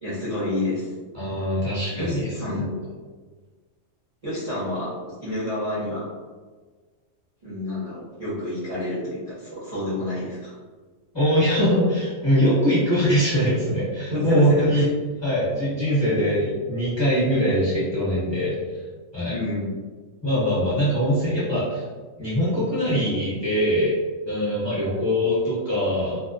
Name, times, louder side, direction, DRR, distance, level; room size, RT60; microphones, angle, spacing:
voice 1, 0.0-0.9 1.9-2.7 4.2-6.1 7.4-10.5 14.1-14.8 19.3-19.7 24.9-25.0, left 1 dB, 35° right, -11 dB, 0.7 m, -29 dB
voice 2, 1.1-2.6 11.1-14.9 15.2-18.5 19.1-19.4 20.2-21.8 22.2-23.9 24.3-26.2, equal, 25° left, -10 dB, 1.0 m, -22 dB
2.7 x 2.0 x 2.4 m, 1.4 s
omnidirectional pair, 1.3 m